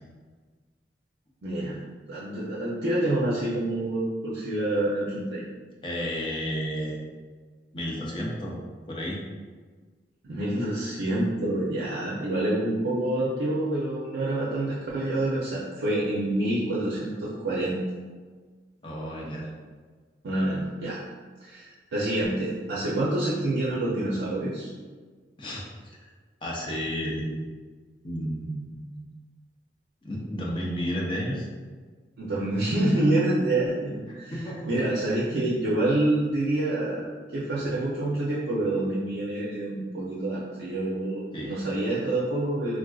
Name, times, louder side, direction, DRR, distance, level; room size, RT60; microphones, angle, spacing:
voice 1, 1.4-1.8 2.1-5.4 10.3-17.8 20.2-21.0 21.4-24.7 32.2-34.3 34.7-42.8, right 1 dB, 85° right, -7 dB, 0.5 m, -27 dB
voice 2, 5.8-7.0 7.7-8.5 8.9-9.2 18.8-19.5 25.4-26.0 26.4-27.4 28.0-28.8 30.0-31.5 34.1-34.6 35.3-35.4 41.3-41.6, equal, 30° left, -4 dB, 0.6 m, -32 dB
3.7 x 2.4 x 2.3 m, 1.5 s
head